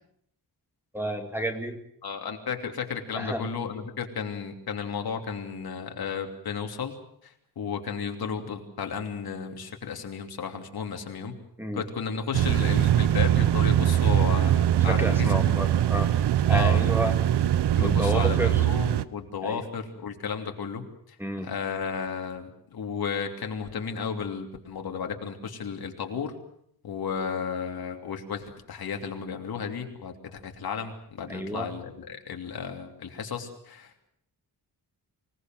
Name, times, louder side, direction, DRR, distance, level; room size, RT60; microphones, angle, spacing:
voice 1, 0.9-1.8 3.2-3.5 11.6-11.8 14.9-16.1 16.5-17.2 17.8-18.6 19.4-19.6 21.2-21.5 31.3-31.7, right 1 dB, 5° right, 4 dB, 2.4 m, -30 dB
voice 2, 2.0-6.9 7.2-11.3 11.7-15.5 16.5-16.8 17.7-26.3 26.8-34.1, left 6 dB, 65° left, 4 dB, 3.0 m, -33 dB
sound 1, 12.3-19.0, right 11 dB, 85° right, 0.9 m, -22 dB
25.5 x 18.5 x 7.7 m, 0.69 s
wide cardioid pair, 170°, 39 cm